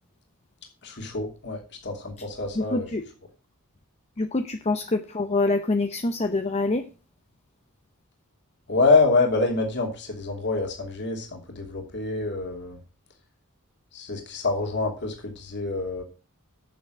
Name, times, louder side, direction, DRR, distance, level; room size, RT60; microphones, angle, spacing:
voice 1, 0.8-2.9 8.7-12.8 13.9-16.0, left 3 dB, 55° left, 2 dB, 2.9 m, -26 dB
voice 2, 2.6-3.0 4.2-6.8, left 2 dB, 30° left, 7 dB, 0.7 m, -25 dB
9.3 x 7.1 x 6.4 m, 0.33 s
head